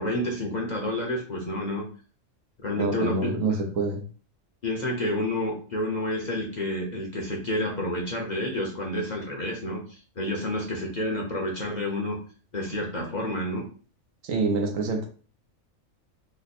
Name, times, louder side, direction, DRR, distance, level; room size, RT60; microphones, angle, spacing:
voice 1, 0.0-1.8 2.6-3.4 4.6-12.2 12.5-13.6, left 1 dB, 40° left, 0.8 m, -29 dB
voice 2, 2.8-4.0 14.2-15.1, right 3 dB, 75° right, 1.1 m, -26 dB
3.2 x 2.0 x 4.1 m
omnidirectional pair, 1.4 m